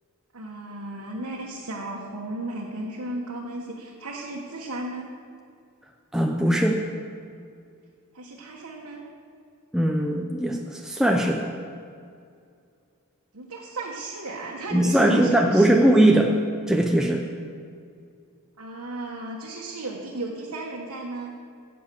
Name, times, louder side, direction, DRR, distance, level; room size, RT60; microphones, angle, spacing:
voice 1, 0.3-5.1 8.1-9.0 13.3-15.9 18.6-21.4, right 2 dB, 75° right, -3 dB, 1.4 m, -34 dB
voice 2, 6.1-6.8 9.7-11.5 14.7-16.3 16.7-17.2, right 1 dB, ahead, 1 dB, 0.6 m, -20 dB
9.9 x 7.6 x 7.6 m, 2.3 s
head